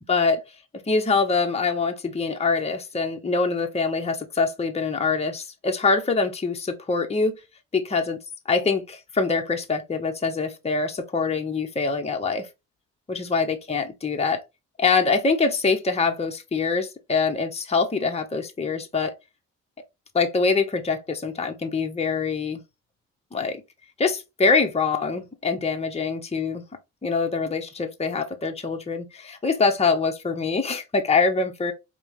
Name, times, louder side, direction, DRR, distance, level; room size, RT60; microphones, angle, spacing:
voice 1, 0.1-0.4 0.9-7.3 7.7-8.2 8.5-12.5 13.1-14.4 14.8-19.1 20.1-22.6 23.3-23.6 24.0-26.6 27.0-31.7, left 4 dB, 20° left, 0.9 m, -24 dB
4.8 x 2.2 x 3.1 m
supercardioid pair, 65°, 30 cm